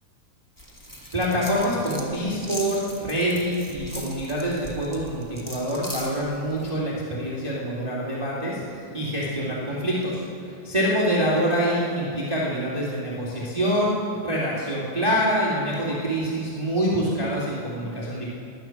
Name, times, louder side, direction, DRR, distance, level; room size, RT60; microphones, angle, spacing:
sound 1, 0.6-6.7, equal, 25° left, 0.4 m, -40 dB
voice 1, 1.1-10.2 10.6-13.9 14.2-18.3, equal, 15° right, -6 dB, 2.1 m, -25 dB
20.0 x 10.5 x 5.9 m, 2.6 s
omnidirectional pair, 3.5 m